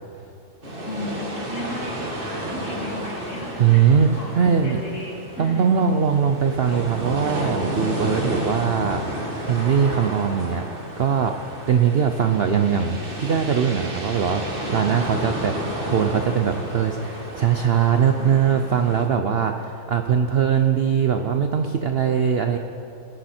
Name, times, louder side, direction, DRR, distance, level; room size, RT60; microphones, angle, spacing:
sound 1, 0.6-19.1, equal, 35° right, 1.9 m, -31 dB
voice 1, 0.9-3.9 4.2-5.7 18.2-18.8, left 1 dB, 50° left, -4 dB, 3.2 m, -35 dB
voice 2, 3.6-4.8 5.4-10.6 11.0-11.4 11.7-22.6, right 7 dB, 60° right, 6 dB, 0.7 m, -21 dB
20.0 x 10.5 x 4.4 m, 2.6 s
omnidirectional pair, 1.7 m